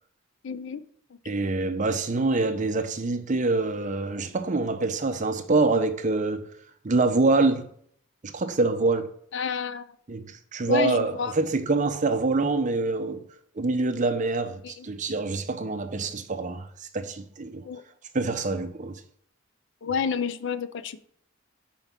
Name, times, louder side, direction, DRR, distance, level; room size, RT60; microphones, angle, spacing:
voice 1, 0.4-0.8 1.6-1.7 9.3-9.8 10.6-11.4 14.6-14.9 17.6-17.8 19.8-21.1, left 6 dB, 65° left, 0.4 m, -30 dB
voice 2, 1.3-6.5 6.8-7.7 8.2-9.1 10.1-13.3 13.6-17.6 18.1-19.0, right 3 dB, 40° right, 0.6 m, -25 dB
5.7 x 4.6 x 5.7 m
head